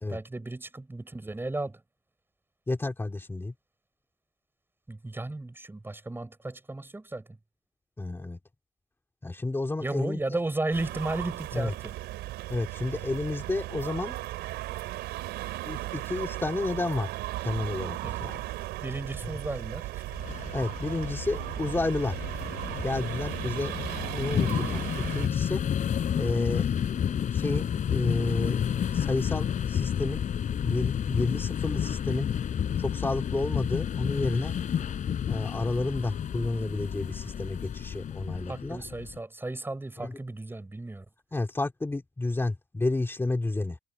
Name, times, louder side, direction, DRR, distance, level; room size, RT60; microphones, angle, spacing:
voice 1, 0.1-1.8 4.9-7.3 9.8-11.9 18.0-18.2 18.8-20.0 38.5-41.0, right 2 dB, 15° right, 6.7 m, -34 dB
voice 2, 2.7-3.5 8.0-8.4 9.2-10.4 11.5-11.7 12.5-14.2 15.6-17.1 17.4-18.4 20.5-22.2 22.8-23.7 24.0-25.6 26.2-26.8 27.1-28.6 28.9-30.2 30.6-32.3 32.8-34.6 35.3-38.8 40.0-40.2 41.3-43.8, left 2 dB, 15° left, 2.6 m, -31 dB
sound 1, 10.7-25.3, right 17 dB, 85° right, 4.2 m, -36 dB
sound 2, 20.1-39.2, left 8 dB, 50° left, 4.3 m, -31 dB
cardioid pair, 110°, 17 cm